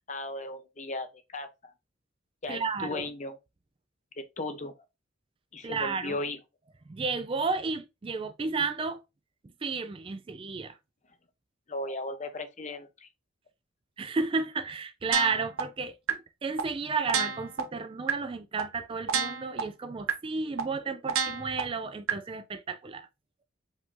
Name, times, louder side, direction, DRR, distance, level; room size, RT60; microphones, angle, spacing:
voice 1, 0.1-1.5 2.4-3.4 4.2-4.7 5.5-6.4 11.7-13.1, left 2 dB, 35° left, 0.6 m, -36 dB
voice 2, 2.5-3.1 5.6-6.2 6.9-9.0 9.6-10.8 14.0-23.1, right 4 dB, 25° right, 0.3 m, -32 dB
sound 1, 15.1-15.6 16.1-16.2 16.6-16.7 17.1-17.6 18.1-18.2 18.6-18.7 19.1-19.6 20.1-20.2 20.6-20.7 21.1-21.6 22.1-22.2, right 6 dB, 75° right, 0.8 m, -28 dB
5.0 x 2.6 x 3.6 m
head